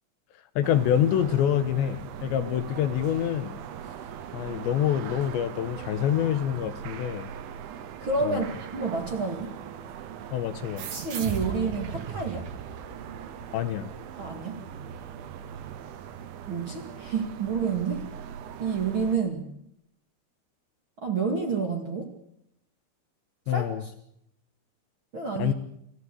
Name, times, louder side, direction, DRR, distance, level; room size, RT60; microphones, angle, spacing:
voice 1, 0.6-3.6 4.3-7.3 8.2-8.5 10.3-10.9 13.5-13.9 23.5-23.8 25.4-25.5, left 10 dB, 75° left, 11 dB, 3.3 m, -26 dB
sound 1, 0.6-19.2, right 8 dB, 85° right, 3.8 m, -40 dB
voice 2, 8.0-9.5 10.9-12.5 14.2-14.6 16.5-18.1 18.6-19.5 21.0-22.2 23.5-23.9 25.1-25.5, right 5 dB, 40° right, 3 dB, 2.2 m, -29 dB
sound 2, 10.8-13.8, right 7 dB, 55° right, 2.6 m, -37 dB
25.5 x 16.0 x 8.4 m, 0.76 s
omnidirectional pair, 5.3 m